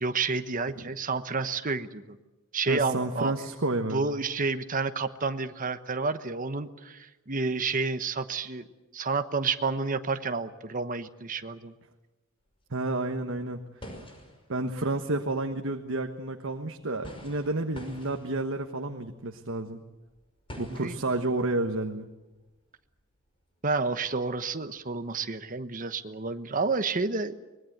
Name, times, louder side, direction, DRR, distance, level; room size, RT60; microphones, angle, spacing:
voice 1, 0.0-2.2 2.5-3.3 3.9-8.6 8.9-11.7 20.7-21.0 23.6-27.3, right 4 dB, 40° right, 9 dB, 1.1 m, -30 dB
voice 2, 2.7-4.0 12.7-13.6 14.5-19.8 20.6-22.1, right 2 dB, 65° right, 5 dB, 1.3 m, -30 dB
sound 1, 12.4-12.5 12.8-25.1, equal, 25° left, 5.5 m, -49 dB
24.5 x 20.5 x 8.0 m, 1.1 s
head